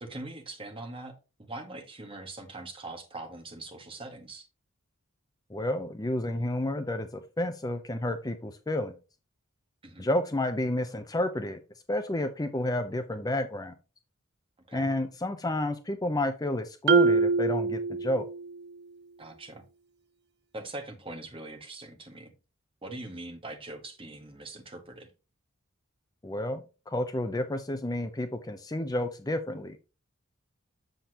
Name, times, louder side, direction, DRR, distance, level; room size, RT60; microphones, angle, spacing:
voice 1, 0.0-4.5 9.8-10.1 14.7-14.9 19.2-19.7 20.5-22.3 22.8-25.1, right 2 dB, 25° right, 1.4 m, -42 dB
voice 2, 5.5-8.9 10.0-11.6 11.9-13.7 14.7-18.2 26.2-29.8, left 1 dB, 20° left, 0.6 m, -30 dB
Marimba xylophone, 16.9-18.6, right 3 dB, 55° right, 0.5 m, -24 dB
7.9 x 7.0 x 2.9 m
head